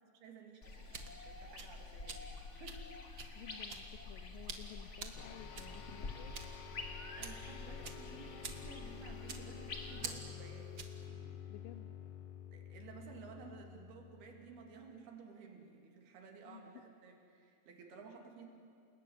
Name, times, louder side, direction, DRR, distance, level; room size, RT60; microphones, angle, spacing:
voice 1, 0.1-3.0 6.9-10.8 11.1-11.4 12.5-18.5, right 5 dB, 80° right, 2 dB, 4.6 m, -55 dB
sound 1, 0.6-10.1, left 3 dB, 40° left, 1.0 m, -48 dB
sound 2, 0.6-11.1, right 5 dB, 45° right, 1.3 m, -50 dB
voice 2, 3.4-6.4 11.5-11.9 16.5-16.7, left 11 dB, 75° left, 8 dB, 2.4 m, -54 dB
sound 3, 5.2-14.9, left 8 dB, 55° left, 1.8 m, -50 dB
29.5 x 19.5 x 9.5 m, 2.4 s
omnidirectional pair, 4.4 m